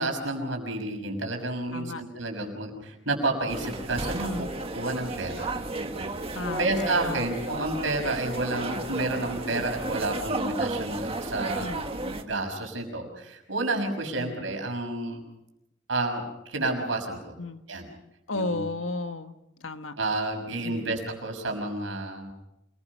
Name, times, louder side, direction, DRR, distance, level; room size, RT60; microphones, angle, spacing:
voice 1, 0.0-4.5 4.7-15.2 15.9-16.2 16.5-17.3 17.7-17.9 18.3-18.6 20.0-22.3, right 2 dB, 75° right, 3 dB, 6.1 m, -30 dB
sound 1, 3.5-12.2, right 2 dB, 30° right, 1.8 m, -33 dB
voice 2, 6.3-7.7 11.6-11.8 14.2-14.4 17.4-17.6 18.3-19.3 19.6-19.9 20.6-20.9, left 3 dB, 85° left, 8 dB, 1.5 m, -34 dB
28.0 x 21.5 x 5.5 m, 0.87 s
head